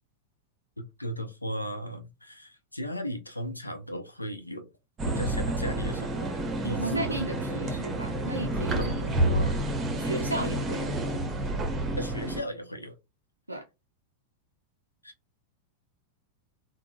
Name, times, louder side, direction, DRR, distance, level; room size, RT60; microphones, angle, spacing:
voice 1, 1.0-4.7 5.1-6.3 6.6-7.2 8.8-8.9 12.0-12.9 15.0-15.1, equal, 85° left, 0.6 m, -36 dB
sound 1, 5.0-12.4, right 1 dB, 20° right, 0.7 m, -29 dB
voice 2, 6.7-9.5 10.0-10.9 13.5-13.7, right 2 dB, 85° right, 0.4 m, -35 dB
3.6 x 2.1 x 2.3 m
figure-of-eight pair, 90°, 0 cm